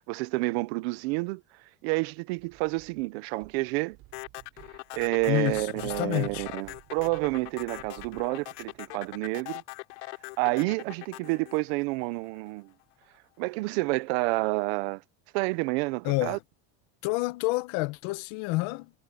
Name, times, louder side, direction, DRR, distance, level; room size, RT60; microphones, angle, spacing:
voice 1, 0.1-1.4 1.8-4.0 4.9-9.6 10.4-12.7 13.4-15.0 15.3-16.4, right 24 dB, 65° right, 0.8 m, -29 dB
sound 1, 2.4-3.1 3.4-9.4, right 19 dB, 45° right, 3.6 m, -53 dB
sound 2, 4.1-12.5, left 25 dB, 85° left, 3.0 m, -42 dB
voice 2, 5.3-6.5 16.0-16.4 17.0-18.9, left 22 dB, 55° left, 1.0 m, -29 dB
cardioid pair, 180°, 34 cm